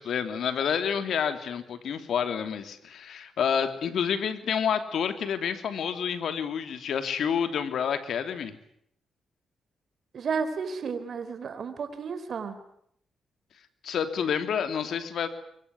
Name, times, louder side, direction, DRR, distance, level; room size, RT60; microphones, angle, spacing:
voice 1, 0.0-8.5 13.8-15.3, left 7 dB, 70° left, 9 dB, 3.0 m, -29 dB
voice 2, 10.1-12.6, right 5 dB, 55° right, 10 dB, 4.1 m, -32 dB
24.5 x 23.0 x 9.5 m, 0.72 s
cardioid pair, 100°, 0 cm